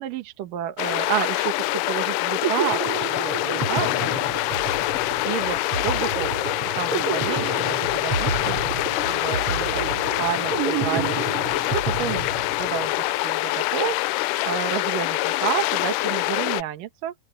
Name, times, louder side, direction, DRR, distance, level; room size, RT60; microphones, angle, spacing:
voice 1, 0.0-4.4 5.2-12.3 12.6-12.9 13.2-17.1, right 11 dB, 70° right, 2.7 m, -31 dB
sound 1, 0.8-16.6, left 19 dB, 85° left, 1.8 m, -25 dB
sound 2, 2.1-12.9, right 5 dB, 45° right, 2.6 m, -30 dB
open air
omnidirectional pair, 4.3 m